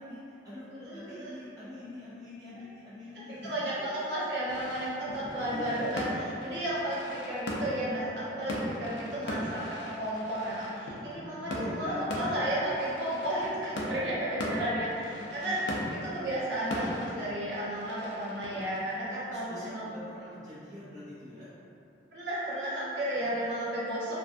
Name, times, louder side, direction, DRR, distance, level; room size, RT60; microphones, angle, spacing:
voice 1, 0.0-3.9 4.1-4.2 5.5-6.4 11.0-12.5 15.0-16.2 19.2-21.5 23.1-23.4, left 1 dB, 20° right, -12 dB, 0.5 m, -44 dB
voice 2, 0.7-1.4 3.1-11.5 11.8-15.6 15.9-19.9 22.1-24.1, right 1 dB, 75° right, -8 dB, 0.7 m, -33 dB
sound 1, 4.5-19.8, left 1 dB, 65° left, 0.4 m, -39 dB
2.4 x 2.2 x 2.5 m, 2.6 s
head